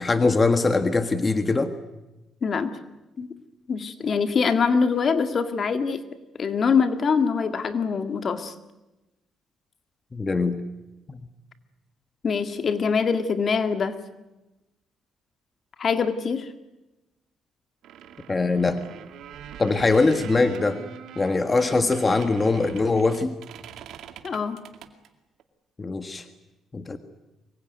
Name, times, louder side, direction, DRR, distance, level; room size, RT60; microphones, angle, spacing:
voice 1, 0.0-1.7 10.1-10.6 11.1-11.2 18.3-18.8 19.6-20.8 21.2-23.4 25.8-26.3 26.7-27.0, left 3 dB, 25° left, 9 dB, 1.7 m, -22 dB
voice 2, 2.4-2.8 3.2-3.3 3.7-6.0 6.4-8.5 12.2-14.0 15.8-16.5 24.2-24.6, left 5 dB, 50° left, 9 dB, 2.0 m, -24 dB
sound 1, 17.8-25.1 25.4-25.5, right 9 dB, 80° right, 2.3 m, -43 dB
24.5 x 21.5 x 9.3 m, 1.0 s
cardioid pair, 90°, 0 cm